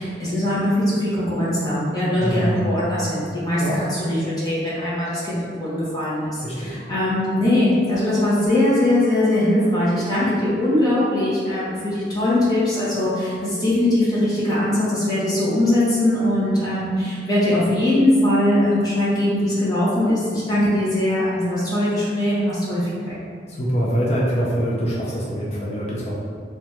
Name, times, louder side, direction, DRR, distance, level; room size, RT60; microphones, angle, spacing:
voice 1, 0.0-23.2, left 1 dB, 20° left, -10 dB, 1.2 m, -21 dB
voice 2, 2.2-2.7 3.6-3.8 6.4-6.8 23.5-26.1, equal, 40° left, -6 dB, 0.6 m, -24 dB
3.4 x 2.9 x 3.5 m, 2.1 s
head